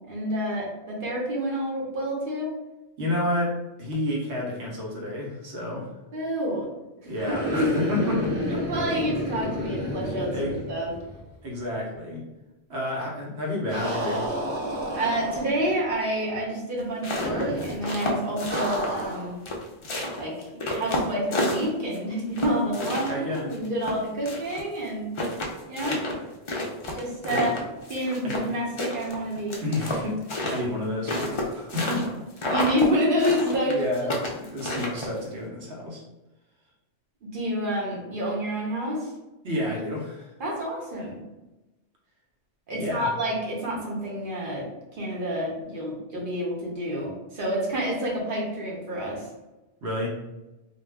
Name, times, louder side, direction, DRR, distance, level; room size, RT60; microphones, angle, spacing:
voice 1, 0.1-2.5 6.1-6.7 7.6-7.7 8.5-10.3 10.7-10.9 14.9-19.4 20.2-25.1 25.7-26.0 26.9-27.5 27.9-29.6 32.4-34.1 37.2-39.1 40.4-41.2 42.7-44.7 45.0-49.3, equal, 55° right, -3 dB, 0.9 m, -28 dB
voice 2, 3.0-5.9 7.0-8.6 10.3-10.5 11.4-12.2 12.7-14.2 23.1-23.5 27.3-27.5 28.2-28.4 29.6-32.5 33.7-36.0 39.4-40.3 42.7-43.1 49.8-50.1, left 1 dB, 80° right, -3 dB, 1.1 m, -30 dB
sound 1, 7.1-11.3 11.6-11.7 13.7-15.7 17.1-17.8 18.5-19.3, equal, 30° right, 0.7 m, -30 dB
sound 2, 16.8-19.1 19.5-22.0 22.4-24.6 24.9-25.0 25.2-28.5 28.8-32.1 32.4-32.9 33.2-35.2, left 1 dB, 45° left, 0.4 m, -30 dB
2.4 x 2.2 x 3.3 m, 1.0 s
omnidirectional pair, 1.1 m